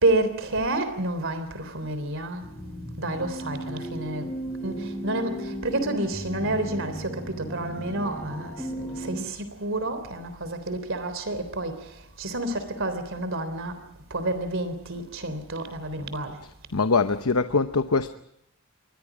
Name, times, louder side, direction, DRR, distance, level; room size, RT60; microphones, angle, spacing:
voice 1, 0.0-2.5 3.0-4.3 4.6-13.8 14.1-16.4, right 2 dB, 60° right, 3.5 m, -29 dB
sound 1, 2.4-9.2, right 1 dB, ahead, 7.6 m, -35 dB
voice 2, 16.7-18.1, left 4 dB, 75° left, 0.9 m, -23 dB
28.5 x 23.5 x 5.0 m
head